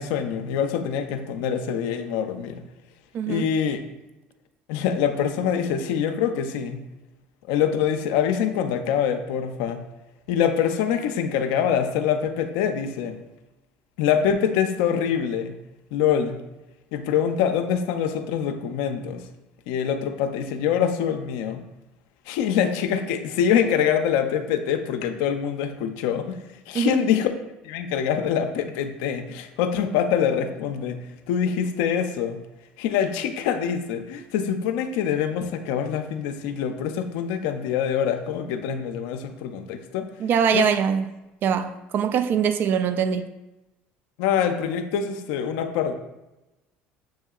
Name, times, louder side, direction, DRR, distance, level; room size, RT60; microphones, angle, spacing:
voice 1, 0.0-2.6 3.3-3.8 4.7-6.8 7.5-9.8 10.3-13.2 14.0-15.5 15.9-16.4 16.9-19.2 19.7-21.6 22.3-26.4 26.7-27.3 27.6-31.0 31.3-32.4 32.8-40.1 40.5-40.6 44.2-45.9, left 8 dB, 80° left, 0.4 m, -24 dB
voice 2, 3.1-3.5 26.7-27.0 40.2-41.0 41.4-43.3, right 7 dB, 50° right, 0.3 m, -22 dB
7.4 x 2.7 x 2.3 m
supercardioid pair, 95°, 4 cm